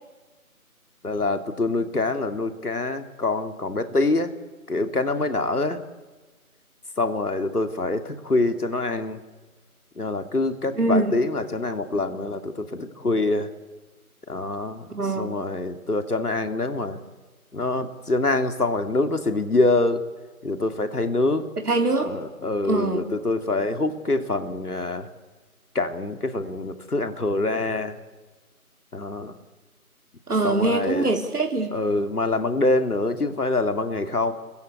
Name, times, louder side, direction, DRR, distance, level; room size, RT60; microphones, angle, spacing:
voice 1, 1.0-4.3 4.7-5.8 7.0-9.2 10.0-13.5 14.3-14.9 15.2-17.0 17.5-20.0 20.4-21.4 22.0-25.1 25.7-28.0 28.9-29.4 30.4-31.1 31.7-34.3, left 2 dB, 85° left, 8 dB, 2.9 m, -25 dB
voice 2, 10.7-11.1 14.9-15.4 21.7-22.1 22.6-23.1 30.3-31.8, right 2 dB, 85° right, 4 dB, 3.7 m, -23 dB
29.5 x 22.0 x 8.3 m, 1.3 s
figure-of-eight pair, 180°, 44 cm